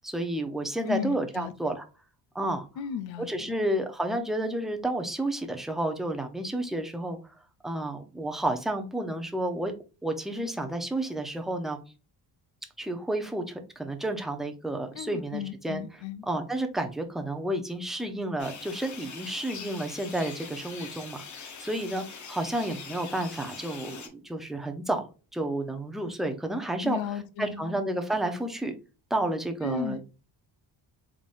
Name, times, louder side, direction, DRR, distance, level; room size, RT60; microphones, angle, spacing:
voice 1, 0.0-1.8 2.3-2.7 3.2-7.2 7.6-9.7 10.0-11.8 12.8-15.8 16.2-28.7 29.1-30.0, right 1 dB, ahead, 0.6 m, -31 dB
voice 2, 0.9-1.5 2.8-3.6 15.0-16.2 26.8-27.8 29.6-30.1, left 9 dB, 85° left, 0.7 m, -35 dB
sound 1, 18.4-24.1, left 5 dB, 40° left, 0.9 m, -43 dB
3.8 x 3.6 x 2.4 m
cardioid pair, 130°, 44 cm